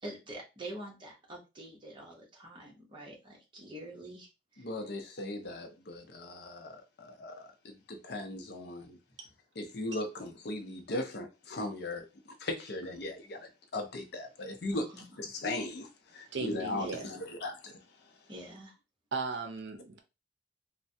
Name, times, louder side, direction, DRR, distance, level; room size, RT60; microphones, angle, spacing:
voice 1, 0.0-4.7 14.7-15.0 16.8-17.2 18.3-18.7, right 1 dB, 25° right, 0.9 m, -46 dB
voice 2, 4.6-9.0 9.6-14.9 15.2-18.1, left 2 dB, 60° left, 0.5 m, -38 dB
voice 3, 16.3-17.2 19.1-20.0, right 4 dB, 70° right, 0.5 m, -37 dB
3.2 x 2.1 x 2.7 m
head